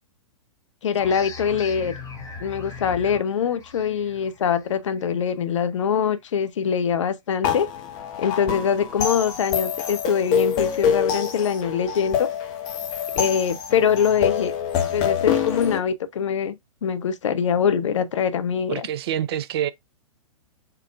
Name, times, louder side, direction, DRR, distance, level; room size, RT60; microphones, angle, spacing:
voice 1, 0.8-1.9 2.4-7.7 8.2-12.3 13.1-14.5 14.9-16.6 16.8-18.9, left 7 dB, 60° left, 0.6 m, -23 dB
sound 1, 1.0-6.3, left 3 dB, 20° left, 1.3 m, -40 dB
sound 2, 7.4-15.8, left 8 dB, 35° left, 1.2 m, -26 dB
voice 2, 18.7-19.7, right 10 dB, 50° right, 0.5 m, -26 dB
4.5 x 3.6 x 2.3 m
figure-of-eight pair, 115°, 17 cm